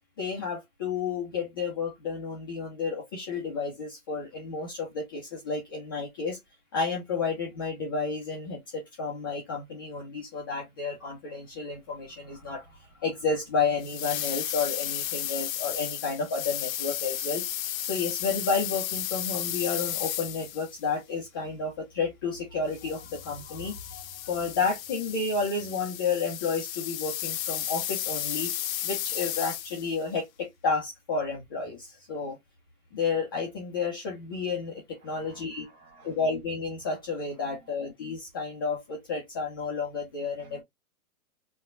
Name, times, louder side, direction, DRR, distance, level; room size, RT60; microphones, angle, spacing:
voice 1, 0.2-6.4 6.7-17.5 17.8-28.5 28.8-32.4 32.9-35.7 36.0-40.6, left 4 dB, 20° left, 0.3 m, -31 dB
sound 1, 13.8-20.8 22.7-30.0, left 12 dB, 65° left, 0.6 m, -34 dB
voice 2, 35.0-36.1 37.4-37.7 40.4-40.6, right 3 dB, 70° right, 1.6 m, -56 dB
4.0 x 2.1 x 2.4 m
hypercardioid pair, 115°, 45 cm